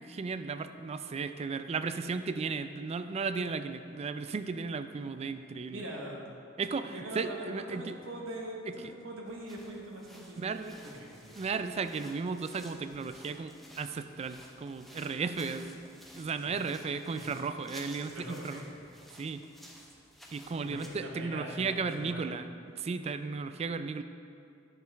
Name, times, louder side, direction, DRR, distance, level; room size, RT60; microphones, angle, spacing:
voice 1, 0.0-5.8 6.6-8.0 10.4-10.8 11.4-15.8 16.1-18.1 18.4-18.6 19.2-19.4 20.3-22.5 22.8-24.0, right 4 dB, 35° right, 10 dB, 0.3 m, -35 dB
voice 2, 5.7-6.3 6.9-11.4 16.4-17.4 17.9-18.9 20.6-22.3, right 1 dB, 85° right, -2 dB, 1.2 m, -43 dB
sound 1, 9.3-21.1, equal, ahead, 0.8 m, -54 dB
9.6 x 6.8 x 3.4 m, 2.5 s
head